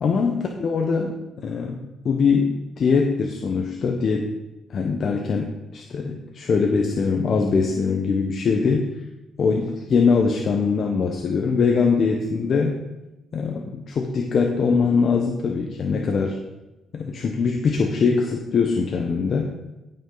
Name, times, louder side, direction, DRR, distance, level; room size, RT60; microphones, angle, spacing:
voice 1, 0.0-4.3 4.7-8.9 9.4-12.8 13.3-16.4 16.9-19.5, left 5 dB, 55° left, 2 dB, 1.0 m, -22 dB
16.0 x 5.6 x 3.9 m, 1.0 s
cardioid pair, 90°, 0 cm